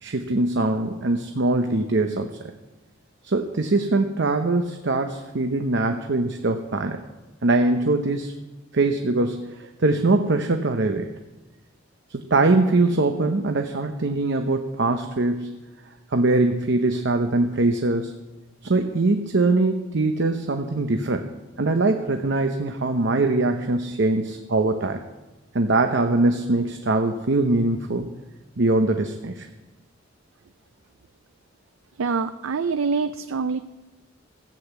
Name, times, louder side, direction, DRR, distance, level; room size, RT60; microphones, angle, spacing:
voice 1, 0.0-2.4 3.2-7.0 7.4-8.3 8.7-11.1 12.1-15.5 16.1-18.1 18.6-21.3 21.6-25.0 25.5-28.1 28.6-29.5, right 2 dB, 60° right, 6 dB, 0.8 m, -22 dB
voice 2, 32.0-33.6, right 5 dB, 85° right, 11 dB, 0.5 m, -25 dB
15.0 x 7.8 x 8.1 m, 1.1 s
head